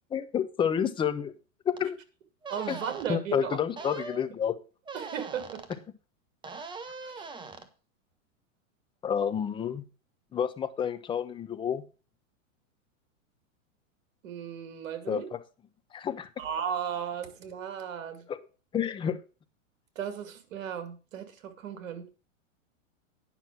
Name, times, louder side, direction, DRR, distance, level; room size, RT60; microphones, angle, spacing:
voice 1, 0.1-1.3 1.7-2.0 2.7-2.8 3.1-4.6 9.0-9.8 10.3-11.8 15.1-15.4 15.9-16.3 18.3-18.4 18.7-19.2, left 8 dB, 15° left, 11 dB, 0.5 m, -29 dB
sound 1, 1.7-1.8 2.4-3.1 3.8-4.2 4.9-5.8 6.4-7.7, right 4 dB, 10° right, 0.9 m, -41 dB
voice 2, 2.5-3.6 4.9-5.7 7.0-7.3 14.2-15.3 16.4-18.3 20.0-22.1, right 8 dB, 70° right, 9 dB, 2.3 m, -36 dB
9.8 x 5.9 x 5.9 m, 0.34 s
hypercardioid pair, 130°, 40 cm